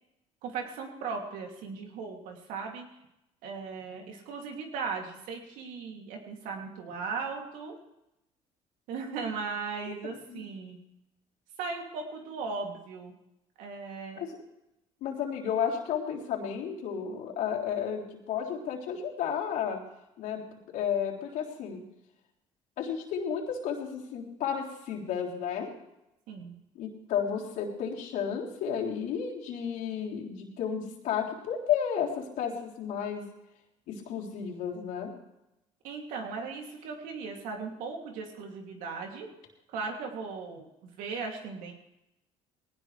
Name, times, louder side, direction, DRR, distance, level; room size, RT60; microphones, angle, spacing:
voice 1, 0.4-2.9 3.4-7.8 8.9-10.8 11.6-13.1 13.6-14.2 26.3-26.5 35.8-39.3 39.7-40.7 41.0-41.7, right 5 dB, 80° right, 1 dB, 2.8 m, -37 dB
voice 2, 10.0-10.4 14.2-14.3 15.0-19.8 20.2-20.4 20.7-21.8 22.8-25.7 26.8-33.2 33.9-35.1, left 8 dB, 75° left, -2 dB, 3.7 m, -32 dB
20.0 x 18.0 x 3.4 m, 0.89 s
supercardioid pair, 80°, 14 cm